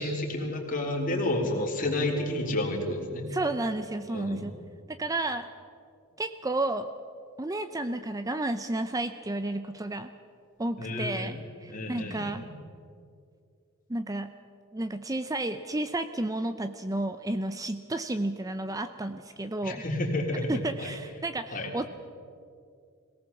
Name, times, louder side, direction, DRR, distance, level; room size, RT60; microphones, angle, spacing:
voice 1, 0.0-3.3 4.1-4.5 10.8-11.4 11.7-12.4 19.6-20.5 20.8-20.9 21.5-21.7, left 1 dB, 40° left, 0 dB, 3.4 m, -30 dB
voice 2, 3.3-4.6 4.9-5.5 6.2-6.9 7.4-10.1 10.6-12.4 13.9-14.3 14.7-19.8 20.5-21.9, right 2 dB, 15° right, 10 dB, 0.5 m, -32 dB
22.5 x 18.0 x 7.1 m, 2.3 s
head